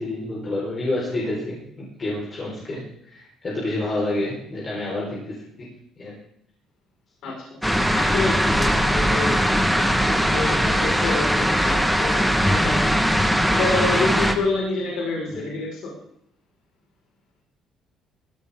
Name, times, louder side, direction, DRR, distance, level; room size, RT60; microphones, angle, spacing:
voice 1, 0.0-5.7 6.0-6.2 15.3-15.4, left 2 dB, 30° left, -5 dB, 4.5 m, -29 dB
voice 2, 7.6-9.4 9.8-12.9 13.5-15.9, left 3 dB, 70° left, -2 dB, 5.0 m, -28 dB
sound 1, 7.6-14.3, equal, ahead, 1.5 m, -20 dB
18.5 x 16.0 x 3.7 m, 0.73 s
cardioid pair, 135°, 0 cm